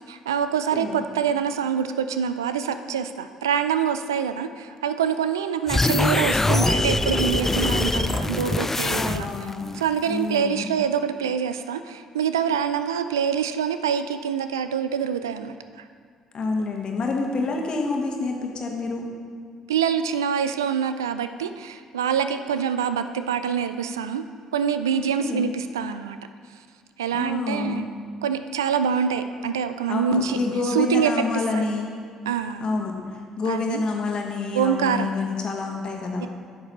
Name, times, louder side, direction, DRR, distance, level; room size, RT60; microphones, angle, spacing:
voice 1, 0.1-9.3 9.7-15.8 19.7-24.3 24.5-26.2 27.0-27.9 28.2-30.4 30.6-31.1 31.5-31.7 32.3-32.7 33.5-33.8 34.5-35.1 36.2-36.3, right 7 dB, 85° right, 10 dB, 0.3 m, -25 dB
voice 2, 0.7-1.1 8.9-9.8 10.1-10.7 12.5-12.6 16.3-19.1 24.9-25.5 27.1-27.8 29.9-31.9 32.6-36.3, left 3 dB, 45° left, 1 dB, 1.6 m, -28 dB
sound 1, 5.7-9.5, left 2 dB, 15° left, 0.4 m, -23 dB
11.0 x 6.7 x 4.2 m, 2.1 s
hypercardioid pair, 50°, 2 cm